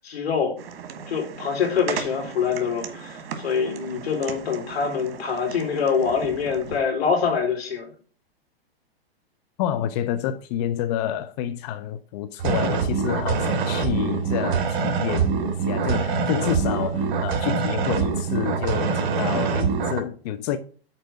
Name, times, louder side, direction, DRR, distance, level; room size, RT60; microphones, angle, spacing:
voice 1, 0.0-0.6 1.1-7.9, left 6 dB, 80° left, 3.6 m, -25 dB
sound 1, 0.6-6.8, right 7 dB, 70° right, 1.7 m, -37 dB
voice 2, 9.6-20.6, left 10 dB, 40° left, 0.6 m, -29 dB
sound 2, 12.4-20.0, right 5 dB, 50° right, 2.0 m, -24 dB
6.8 x 4.5 x 5.7 m
hypercardioid pair, 135°, 31 cm